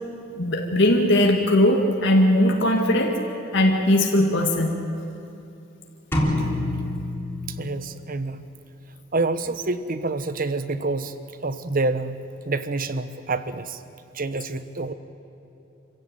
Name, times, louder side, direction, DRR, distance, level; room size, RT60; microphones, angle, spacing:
voice 1, 0.4-3.2 3.5-4.7, left 1 dB, 60° left, 1 dB, 2.2 m, -19 dB
sound 1, 6.1-8.1, left 1 dB, 10° left, 3.5 m, -26 dB
voice 2, 7.5-8.4 9.1-11.2 11.4-13.8 14.1-14.9, right 3 dB, 45° right, 12 dB, 1.0 m, -27 dB
27.5 x 16.0 x 9.1 m, 2.9 s
head